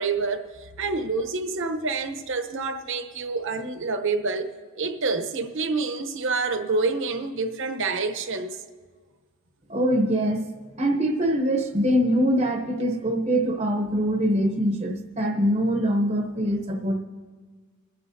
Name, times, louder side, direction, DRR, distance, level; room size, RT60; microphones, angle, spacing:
voice 1, 0.0-8.6, right 3 dB, 60° right, 0.9 m, -28 dB
voice 2, 9.7-10.5 10.8-17.0, equal, 30° right, 0.8 m, -23 dB
29.5 x 9.9 x 2.7 m
head